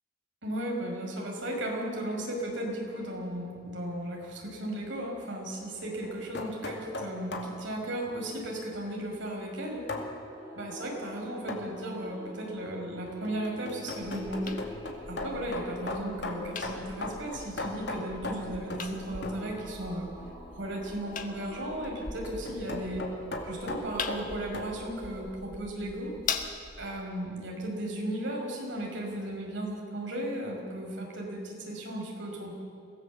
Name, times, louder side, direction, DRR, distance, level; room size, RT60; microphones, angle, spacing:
voice 1, 0.4-9.9 10.5-14.6 15.1-20.1 20.5-23.1 23.4-26.1 26.8-32.5, right 1 dB, 75° right, 0 dB, 5.4 m, -35 dB
sound 1, 6.0-7.6 9.9-10.1 11.5-11.8 13.1-19.0 19.2-19.5 21.6-24.7, left 2 dB, 60° left, 2.4 m, -38 dB
sound 2, 9.6-25.7, right 1 dB, 20° right, 5.8 m, -46 dB
sound 3, 14.0-27.0, left 5 dB, 45° left, 1.4 m, -42 dB
23.5 x 17.0 x 7.4 m, 2.5 s
head